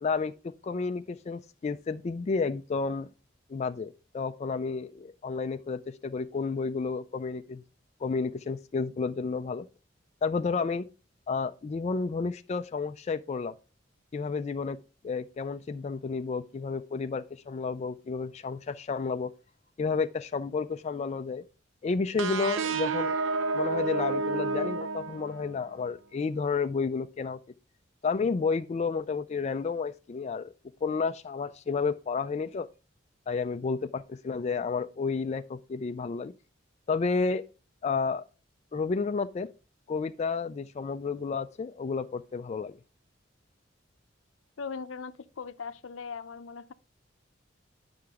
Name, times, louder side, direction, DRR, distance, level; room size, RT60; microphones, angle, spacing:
voice 1, 0.0-3.1 3.5-7.6 8.0-9.7 10.2-10.9 11.3-13.5 14.1-19.3 19.8-21.4 21.8-23.2 23.5-27.4 28.0-30.5 30.8-32.7 33.3-36.3 36.9-37.4 37.8-38.2 38.7-39.5 39.9-42.7, left 4 dB, 35° left, 0.3 m, -31 dB
sound 1, 22.2-25.7, right 3 dB, 85° right, 0.7 m, -30 dB
voice 2, 44.6-46.7, left 5 dB, 85° left, 0.6 m, -39 dB
9.3 x 5.7 x 3.6 m
head